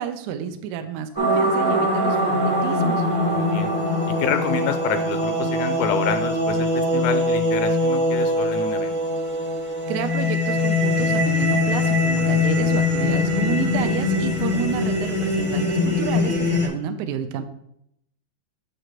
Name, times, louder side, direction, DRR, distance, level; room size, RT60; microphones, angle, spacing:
voice 1, 0.0-3.0 9.9-17.4, right 9 dB, 80° right, 7 dB, 2.0 m, -30 dB
sound 1, 1.2-16.7, left 2 dB, 15° left, 0.3 m, -22 dB
voice 2, 3.2-3.7 4.1-9.0, left 9 dB, 90° left, 9 dB, 2.1 m, -28 dB
7.9 x 6.7 x 2.9 m, 0.74 s
omnidirectional pair, 3.6 m